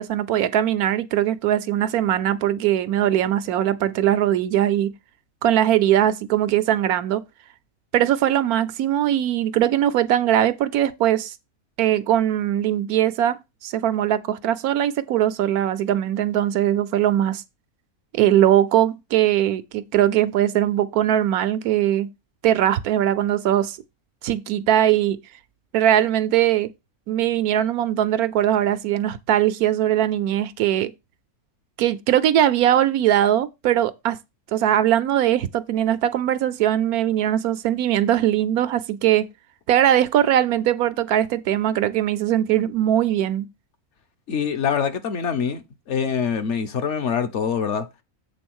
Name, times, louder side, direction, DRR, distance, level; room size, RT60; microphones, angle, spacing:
voice 1, 0.0-4.9 5.4-7.2 7.9-11.3 11.8-17.4 18.1-22.1 22.4-23.8 24.2-25.2 25.7-26.7 27.1-30.9 31.8-34.2 34.5-39.3 39.7-43.5, right 11 dB, 85° right, 1.2 m, -20 dB
voice 2, 44.3-47.9, left 7 dB, 55° left, 1.0 m, -24 dB
7.8 x 3.8 x 6.2 m
omnidirectional pair, 1.5 m